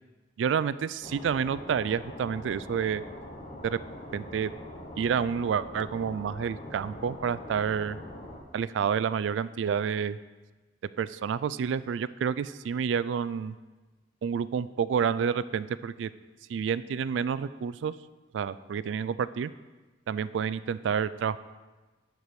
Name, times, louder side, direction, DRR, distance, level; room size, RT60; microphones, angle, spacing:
voice 1, 0.4-3.0 3.6-3.8 4.1-4.5 5.0-8.0 8.5-10.2 11.0-13.5 14.2-16.1 16.5-17.9 18.3-19.5 20.1-21.4, right 7 dB, 85° right, 17 dB, 0.3 m, -29 dB
sound 1, 1.0-8.4, left 1 dB, 40° left, 1.2 m, -43 dB
9.1 x 4.7 x 6.8 m, 1.2 s
head